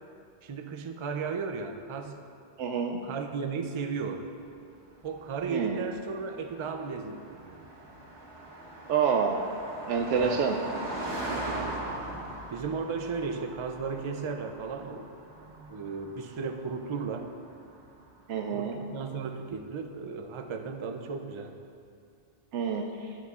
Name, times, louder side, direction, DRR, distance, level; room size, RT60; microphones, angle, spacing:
voice 1, 0.4-2.2 3.0-4.3 5.0-7.6 10.1-10.5 11.2-11.8 12.5-15.1 15.7-17.3 18.5-21.6, right 5 dB, 45° right, 5 dB, 0.4 m, -35 dB
voice 2, 2.6-3.0 5.5-5.8 8.9-9.4 9.9-10.6 18.3-18.8 22.5-22.8, right 6 dB, 90° right, 2 dB, 0.9 m, -27 dB
Car passing by, 4.6-18.3, right 1 dB, 70° right, 1.9 m, -41 dB
12.5 x 9.7 x 2.4 m, 2.5 s
omnidirectional pair, 1.2 m